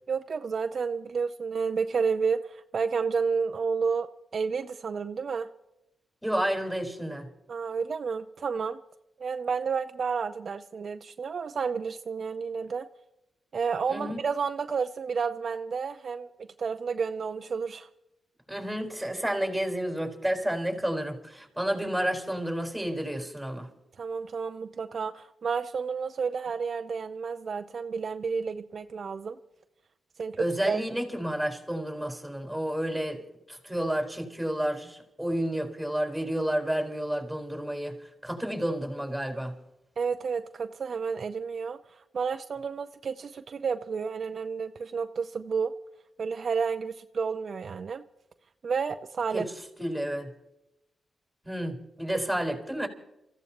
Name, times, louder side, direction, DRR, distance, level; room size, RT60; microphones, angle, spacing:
voice 1, 0.1-5.5 7.5-8.8 9.2-12.9 13.5-16.3 16.6-17.9 24.0-29.4 30.2-30.8 40.0-45.7 46.2-48.0 48.6-49.5, right 5 dB, 60° right, 0.5 m, -31 dB
voice 2, 6.2-7.3 13.9-14.2 18.5-23.7 30.4-33.2 33.5-37.9 38.2-39.5 49.3-49.5 49.8-50.3 51.4-52.9, right 1 dB, ahead, 4.5 m, -30 dB
28.5 x 15.0 x 3.0 m
cardioid pair, 70°, 0 cm